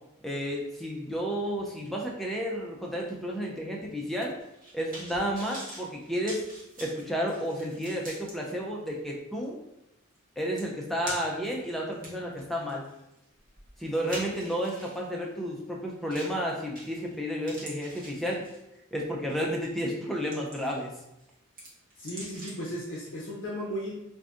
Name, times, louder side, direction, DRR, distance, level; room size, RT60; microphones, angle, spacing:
voice 1, 0.2-4.3 4.7-6.4 6.8-9.6 10.4-12.8 13.8-18.5 18.9-20.9, equal, ahead, -2 dB, 0.4 m, -32 dB
sound 1, 4.4-8.3 8.9-9.0 10.2-10.3 10.6-11.5 11.9-15.0 16.1-16.4 16.8-17.2 17.4-18.8 19.3-19.5 20.0-20.9 21.2-22.7 23.0-23.1, right 1 dB, 40° right, 0.9 m, -44 dB
voice 2, 22.0-23.9, equal, 65° left, -4 dB, 0.6 m, -35 dB
2.6 x 2.4 x 3.4 m, 0.89 s
head